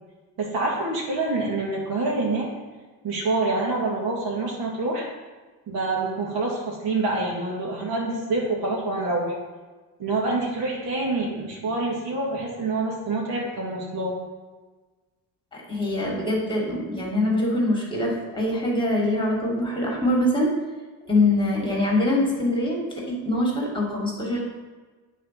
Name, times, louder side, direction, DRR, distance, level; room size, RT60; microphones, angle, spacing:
voice 1, 0.4-2.5 3.0-5.1 5.7-9.3 10.0-14.2, right 2 dB, 75° right, -3 dB, 2.3 m, -26 dB
voice 2, 15.5-20.5 21.0-24.4, left 1 dB, 15° left, -2 dB, 2.3 m, -24 dB
8.3 x 4.2 x 5.9 m, 1.3 s
cardioid pair, 105°, 37 cm